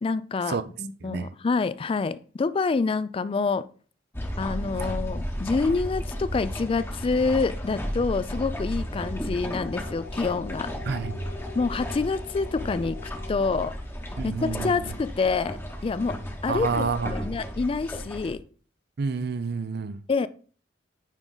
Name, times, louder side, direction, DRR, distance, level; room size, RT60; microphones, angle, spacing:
voice 1, 0.0-3.7 4.4-10.7 11.5-13.8 14.2-16.8 17.1-18.4 20.1-20.3, left 4 dB, 30° left, 0.3 m, -27 dB
voice 2, 1.0-1.3 4.8-4.9 10.9-11.3 14.2-14.8 16.5-17.1 19.0-20.0, right 4 dB, 60° right, 0.5 m, -29 dB
sound 1, 4.1-18.3, equal, 10° left, 0.9 m, -34 dB
sound 2, 9.6-13.6, left 4 dB, 50° left, 0.8 m, -44 dB
9.0 x 3.7 x 3.8 m
head